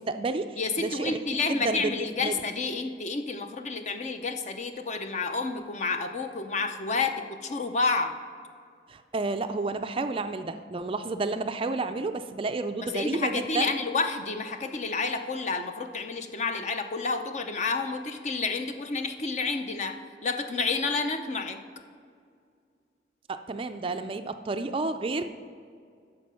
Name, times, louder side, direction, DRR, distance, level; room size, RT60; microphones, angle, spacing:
voice 1, 0.0-2.4 8.9-13.7 23.3-25.2, right 3 dB, 30° right, 9 dB, 0.4 m, -31 dB
voice 2, 0.6-8.2 12.7-21.6, left 4 dB, 40° left, 7 dB, 0.6 m, -30 dB
9.6 x 6.8 x 5.6 m, 2.2 s
head